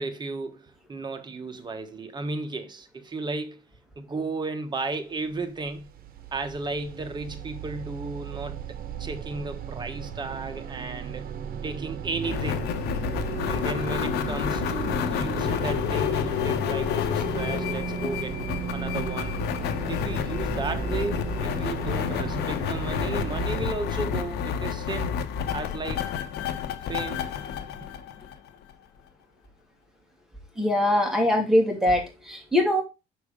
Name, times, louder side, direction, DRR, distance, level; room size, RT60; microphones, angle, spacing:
voice 1, 0.0-3.6 4.0-5.9 6.3-11.2 11.6-12.7 13.4-18.4 18.7-19.4 19.9-25.2 25.5-26.1 26.9-27.3, right 3 dB, 25° right, 1.3 m, -34 dB
sound 1, 5.3-23.7, right 8 dB, 60° right, 1.0 m, -35 dB
sound 2, 12.2-28.7, left 8 dB, 75° left, 1.0 m, -29 dB
voice 2, 30.6-32.8, left 1 dB, 5° right, 2.6 m, -22 dB
6.5 x 4.7 x 5.0 m
cardioid pair, 110°, 17 cm